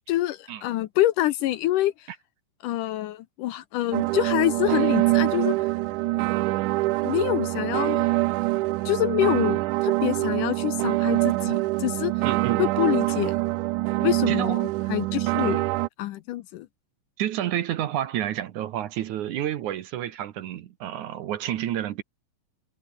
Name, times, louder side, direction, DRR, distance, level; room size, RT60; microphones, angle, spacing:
voice 1, 0.1-2.1 2.6-5.5 7.0-8.1 8.9-12.1 12.6-13.3 14.0-14.6 14.9-15.7 16.0-16.7, left 15 dB, 75° left, 2.1 m, -26 dB
sound 1, 3.9-15.9, right 19 dB, 90° right, 1.8 m, -24 dB
voice 2, 12.2-12.7 14.3-14.6 17.2-22.0, right 12 dB, 65° right, 2.2 m, -29 dB
omnidirectional pair, 4.2 m